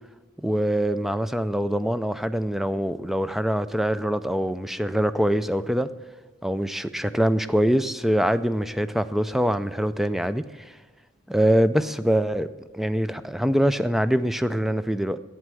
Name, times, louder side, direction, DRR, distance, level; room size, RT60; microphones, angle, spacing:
voice 1, 0.4-5.9 6.4-10.4 11.3-12.5 12.7-15.2, equal, ahead, 12 dB, 0.3 m, -24 dB
8.4 x 7.9 x 7.6 m, 1.4 s
head